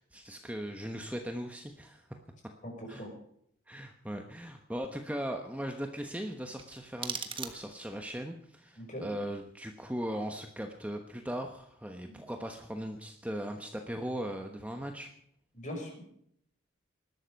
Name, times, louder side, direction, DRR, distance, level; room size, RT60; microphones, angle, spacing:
voice 1, 0.0-2.1 2.9-3.0 3.7-15.1, equal, 5° right, 4 dB, 1.1 m, -38 dB
voice 2, 2.6-3.1 8.8-9.0 12.1-12.2 15.5-16.0, equal, 40° left, 2 dB, 5.9 m, -41 dB
sound 1, 6.5-8.0, right 6 dB, 25° right, 1.4 m, -40 dB
20.0 x 12.5 x 5.3 m, 0.70 s
head